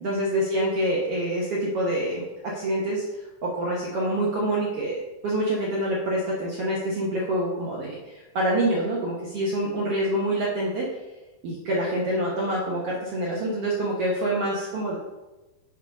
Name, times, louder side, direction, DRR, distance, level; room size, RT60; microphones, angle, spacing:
voice 1, 0.0-3.0 3.4-10.9 11.4-15.0, right 1 dB, 65° right, -4 dB, 1.5 m, -26 dB
6.7 x 4.7 x 5.3 m, 1.1 s
omnidirectional pair, 4.0 m